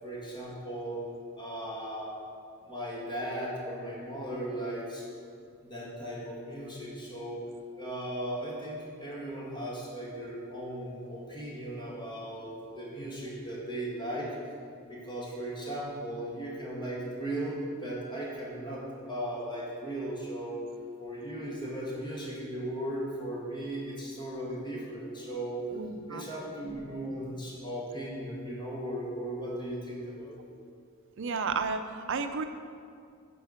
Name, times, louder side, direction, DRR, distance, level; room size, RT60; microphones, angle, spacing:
voice 1, 0.0-1.1 1.4-2.1 2.6-5.1 5.6-7.4 7.8-14.4 14.9-20.7 21.0-25.6 26.1-30.4, right 1 dB, 20° left, -5 dB, 2.1 m, -37 dB
voice 2, 25.7-26.2 31.2-32.5, right 4 dB, 60° right, 8 dB, 0.6 m, -32 dB
10.0 x 4.7 x 6.5 m, 2.2 s
head